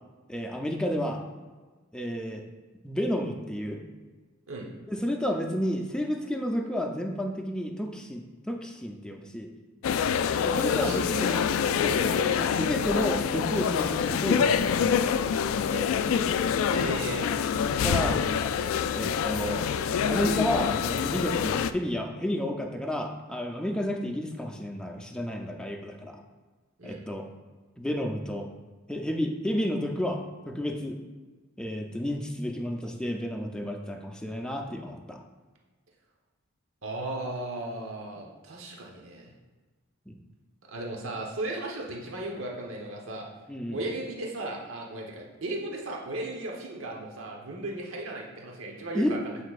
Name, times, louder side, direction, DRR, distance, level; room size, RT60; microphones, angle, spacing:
voice 1, 0.3-1.2 1.9-2.4 2.8-3.8 4.9-9.5 10.4-11.4 11.8-11.9 12.6-14.8 17.8-18.2 18.9-19.7 20.1-26.2 26.8-27.3 27.8-28.5 28.9-31.0 31.6-35.2 40.1-40.2 43.5-43.8 48.9-49.2, equal, 5° left, 2 dB, 0.5 m, -31 dB
sound 1, 9.8-21.7, left 7 dB, 80° left, 0.3 m, -26 dB
voice 2, 10.6-11.0 11.3-12.5 15.7-15.8 16.7-17.3 26.8-27.0 36.8-39.3 40.7-43.3 43.7-49.4, right 2 dB, 90° right, 0 dB, 1.0 m, -36 dB
8.0 x 5.1 x 2.4 m, 1.3 s
head